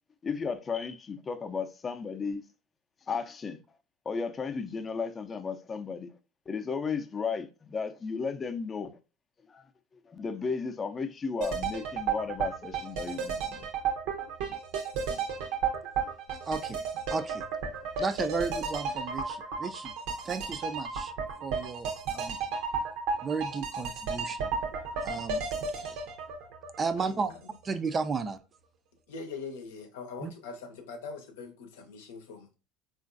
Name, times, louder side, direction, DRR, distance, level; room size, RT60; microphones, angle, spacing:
voice 1, 0.2-2.4 3.1-3.6 4.1-6.1 6.5-9.0 9.5-9.6 10.1-13.7, left 5 dB, 30° left, 0.5 m, -34 dB
sound 1, 11.4-27.3 27.6-27.7, right 5 dB, 70° right, 0.7 m, -33 dB
voice 2, 16.4-16.8 17.1-17.4 18.0-19.9 20.2-21.1 21.4-22.4 23.2-24.5 25.0-25.4 25.7-26.0 26.8-27.3 27.6-28.4 30.2-30.3, right 5 dB, 30° right, 0.3 m, -33 dB
voice 3, 27.0-27.4 29.1-32.5, left 4 dB, 85° left, 0.7 m, -42 dB
3.7 x 2.4 x 2.5 m
hypercardioid pair, 85°, 0 cm